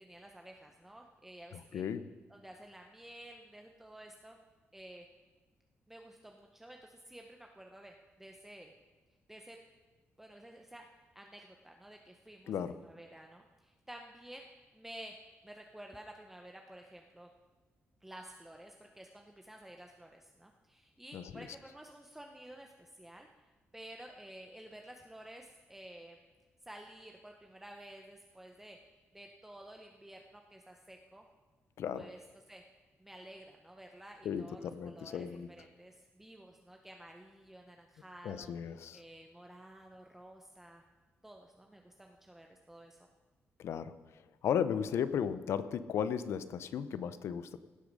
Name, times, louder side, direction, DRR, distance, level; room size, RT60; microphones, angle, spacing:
voice 1, 0.0-1.8 2.3-4.4 4.7-5.1 5.9-8.7 9.3-9.6 10.2-10.9 11.1-14.4 14.7-15.2 15.4-17.3 18.0-23.3 23.7-26.2 26.6-28.8 29.1-31.3 31.9-32.6 33.0-40.8 41.2-43.0, right 1 dB, 5° right, 2 dB, 0.7 m, -52 dB
voice 2, 1.5-2.1 12.5-12.8 21.1-21.5 31.8-32.1 34.2-35.5 38.2-39.0 43.6-44.0 44.4-47.6, left 8 dB, 75° left, 14 dB, 0.6 m, -35 dB
17.0 x 8.2 x 5.3 m, 1.3 s
wide cardioid pair, 150°, 5 cm